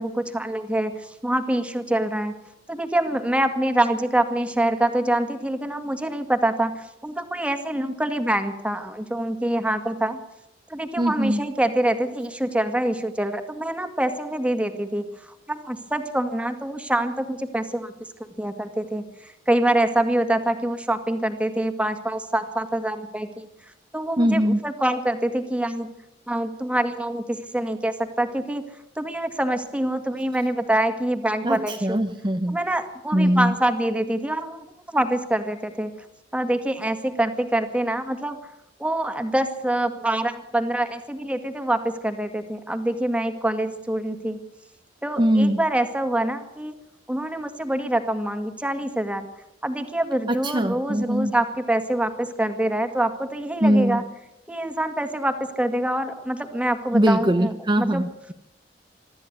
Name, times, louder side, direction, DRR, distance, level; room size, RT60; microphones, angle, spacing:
voice 1, 0.0-2.3 2.7-10.2 10.7-17.9 18.4-23.5 23.9-25.9 26.3-28.6 29.0-32.0 32.5-35.9 36.3-38.4 38.8-44.4 45.0-46.7 47.1-49.3 49.6-54.0 54.5-57.5 57.8-58.0, right 1 dB, 5° right, 7 dB, 2.0 m, -25 dB
voice 2, 11.0-11.4 24.2-24.6 31.4-32.6 33.1-33.6 45.2-45.6 50.3-51.3 53.6-54.0 56.9-58.3, equal, 25° right, 6 dB, 0.9 m, -21 dB
24.0 x 13.0 x 9.4 m, 0.87 s
head